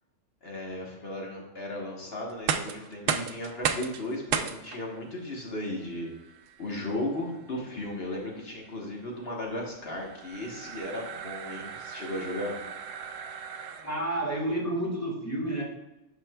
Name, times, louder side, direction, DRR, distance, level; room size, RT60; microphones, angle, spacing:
voice 1, 0.4-6.1 6.6-12.6, left 1 dB, 50° left, -1 dB, 1.3 m, -35 dB
sound 1, 2.3-14.2, right 7 dB, 75° right, 0.9 m, -36 dB
voice 2, 13.8-15.6, right 1 dB, 10° left, -3 dB, 1.5 m, -30 dB
9.1 x 6.1 x 2.3 m, 0.96 s
omnidirectional pair, 1.3 m